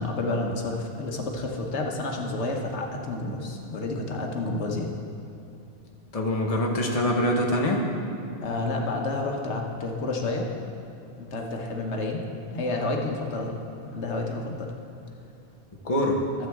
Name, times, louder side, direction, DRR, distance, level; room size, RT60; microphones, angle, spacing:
voice 1, 0.0-4.9 8.4-10.5 11.2-12.2 12.5-14.7, left 2 dB, 80° left, 1 dB, 1.3 m, -30 dB
voice 2, 6.1-7.8 15.8-16.2, left 1 dB, 35° left, 0 dB, 1.1 m, -24 dB
13.5 x 7.8 x 3.6 m, 2.8 s
omnidirectional pair, 1.1 m